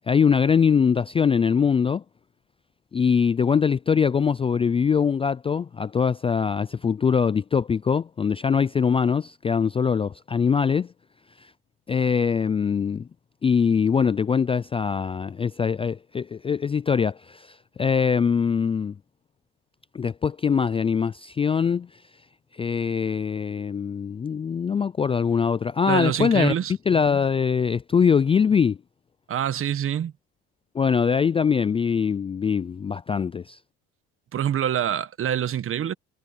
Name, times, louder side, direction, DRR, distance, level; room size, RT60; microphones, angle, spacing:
voice 1, 0.1-2.0 2.9-10.9 11.9-13.1 13.4-18.9 19.9-21.9 22.6-26.5 26.9-28.8 30.7-33.6, left 6 dB, 20° left, 0.3 m, -22 dB
voice 2, 25.9-26.7 29.3-30.1 34.3-35.9, right 10 dB, 40° right, 1.3 m, -25 dB
supercardioid pair, 95°, 32 cm